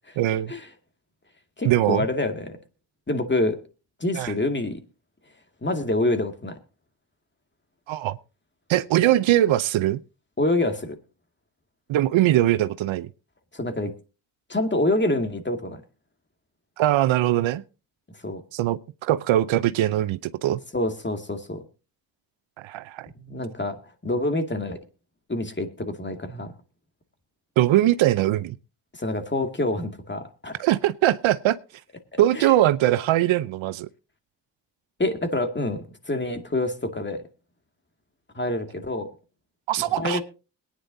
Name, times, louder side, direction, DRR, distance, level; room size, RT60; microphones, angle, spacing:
voice 1, 0.2-0.5 1.6-2.1 4.1-4.3 7.9-8.2 8.7-10.0 11.9-13.1 16.8-17.6 18.5-20.6 22.6-23.1 27.6-28.6 30.6-31.6 32.2-33.9 39.7-40.2, right 14 dB, 75° right, 0.7 m, -21 dB
voice 2, 1.6-2.6 3.1-3.6 4.0-4.8 5.6-6.6 10.4-11.0 13.5-13.9 14.5-15.8 18.2-18.4 20.7-21.6 23.2-24.8 25.3-26.5 28.9-30.6 32.1-32.5 35.0-37.2 38.3-39.1 39.8-40.2, left 2 dB, 25° left, 2.2 m, -26 dB
22.0 x 9.9 x 2.7 m
supercardioid pair, 50°, 48 cm